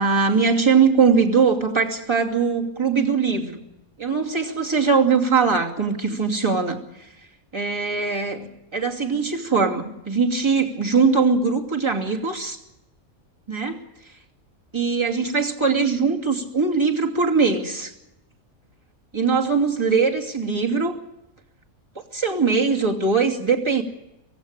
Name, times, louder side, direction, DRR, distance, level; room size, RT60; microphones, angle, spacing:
voice 1, 0.0-3.6 4.0-7.1 7.5-12.6 13.5-13.8 14.7-17.9 19.1-20.9 21.9-23.8, right 5 dB, 20° right, 1 dB, 2.7 m, -21 dB
24.5 x 17.0 x 9.0 m, 0.95 s
omnidirectional pair, 1.5 m